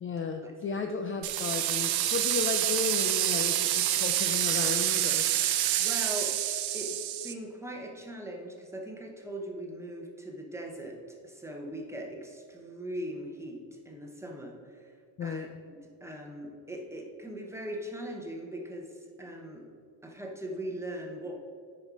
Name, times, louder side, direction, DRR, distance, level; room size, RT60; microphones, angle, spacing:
voice 1, 0.0-5.3 15.2-15.5, left 5 dB, 30° left, 5 dB, 0.4 m, -34 dB
sound 1, 1.2-7.3, right 12 dB, 65° right, 0.7 m, -27 dB
voice 2, 5.8-6.3 6.7-7.0 7.2-14.9 15.2-18.9 19.2-19.7 20.0-21.4, right 1 dB, 5° right, 1 dB, 0.9 m, -40 dB
9.5 x 5.4 x 4.7 m, 2.2 s
cardioid pair, 145°, 42 cm